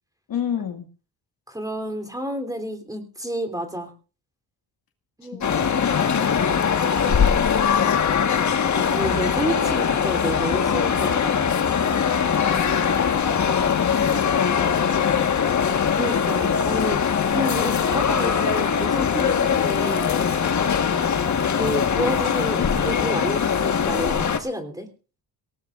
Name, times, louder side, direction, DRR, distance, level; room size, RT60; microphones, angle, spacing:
voice 1, 0.3-0.9 5.4-6.1 7.1-8.0 12.2-15.3 21.0-21.3, left 8 dB, 60° left, 6 dB, 2.1 m, -32 dB
voice 2, 1.5-3.9 5.2-5.6 8.8-11.6 15.9-17.0 17.3-20.3 21.5-24.9, equal, 10° right, 5 dB, 3.4 m, -30 dB
sound 1, 5.4-24.4, left 7 dB, 45° left, 1.6 m, -21 dB
23.0 x 18.0 x 2.5 m, 0.35 s
cardioid pair, 100°, 39 cm